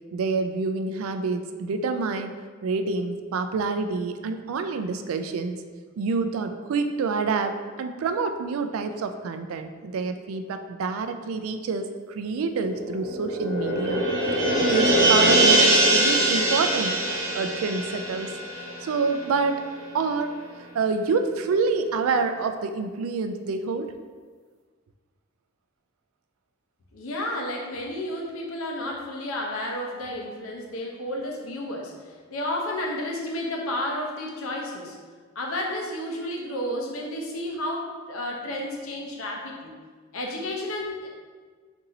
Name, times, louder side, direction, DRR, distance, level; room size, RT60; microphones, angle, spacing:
voice 1, 0.1-2.3 2.6-5.6 6.0-14.0 14.7-16.9 17.3-18.3 18.8-19.6 19.9-20.3 20.7-23.9, right 4 dB, 85° right, 8 dB, 0.3 m, -27 dB
sound 1, 12.4-19.4 19.7-19.8, right 1 dB, 60° right, 0.9 m, -22 dB
voice 2, 26.9-31.9 32.3-35.0 35.4-39.7 40.1-41.1, left 1 dB, 90° left, 0 dB, 0.7 m, -31 dB
4.0 x 2.7 x 3.9 m, 1.5 s
head